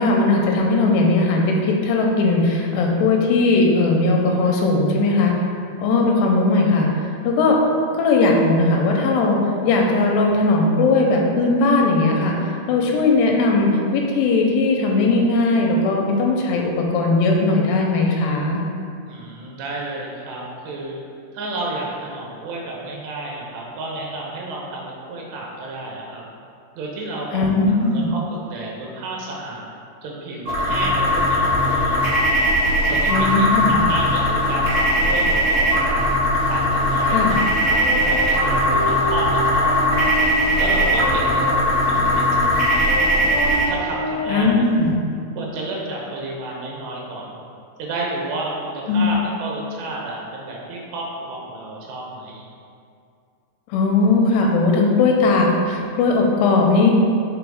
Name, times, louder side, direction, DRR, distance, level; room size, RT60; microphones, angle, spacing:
voice 1, 0.0-5.4 5.8-6.9 7.2-7.6 8.0-18.6 27.3-28.1 33.1-33.8 37.0-37.3 44.3-45.0 48.9-49.1 53.7-56.9, left 3 dB, 90° left, 0 dB, 2.7 m, -18 dB
voice 2, 19.1-21.0 21.3-26.2 26.7-27.5 27.7-29.7 30.0-32.3 32.8-36.0 36.5-43.0 43.7-44.4 45.4-47.5 47.8-52.5, right 2 dB, 80° right, -2 dB, 3.1 m, -31 dB
sound 1, 30.5-43.6, equal, 55° right, 2.2 m, -19 dB
sound 2, 37.7-44.4, equal, 60° left, 1.3 m, -30 dB
6.8 x 4.0 x 3.5 m, 2.4 s
omnidirectional pair, 4.8 m